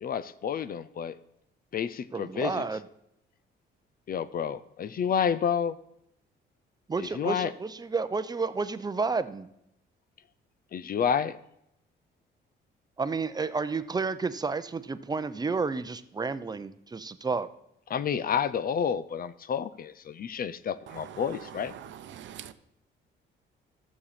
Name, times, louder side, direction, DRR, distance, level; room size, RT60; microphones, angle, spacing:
voice 1, 0.0-1.2 1.7-2.6 4.1-5.8 7.0-7.5 10.7-11.4 17.9-21.7, left 7 dB, 50° left, 15 dB, 0.6 m, -30 dB
voice 2, 2.1-2.8 6.9-9.5 13.0-17.5, right 4 dB, 20° right, 13 dB, 0.6 m, -31 dB
voice 3, 21.7-22.5, right 10 dB, 70° right, 12 dB, 0.7 m, -44 dB
12.5 x 7.2 x 4.2 m, 0.79 s
cardioid pair, 90°, 20 cm